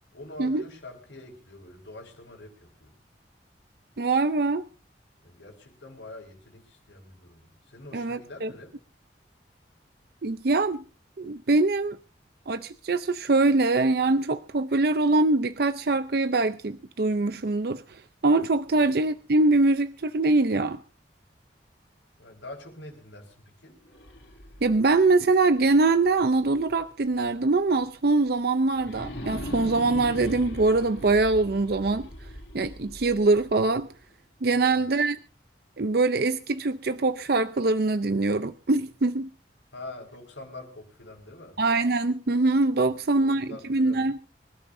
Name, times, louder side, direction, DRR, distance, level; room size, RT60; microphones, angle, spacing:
voice 1, 0.1-2.9 5.2-8.7 18.8-18.9 22.2-23.7 34.5-34.8 39.7-41.6 42.9-44.0, left 2 dB, 90° left, 3 dB, 5.1 m, -45 dB
voice 2, 4.0-4.6 7.9-8.5 10.2-10.8 11.2-12.0 12.5-20.8 24.6-32.1 32.5-33.9 34.4-35.2 35.8-39.3 41.6-44.2, right 3 dB, 55° right, 11 dB, 0.6 m, -23 dB
sound 1, 23.8-26.8 27.3-27.4 28.7-33.8, equal, 70° left, 2.7 m, -40 dB
25.0 x 13.0 x 2.6 m, 0.36 s
head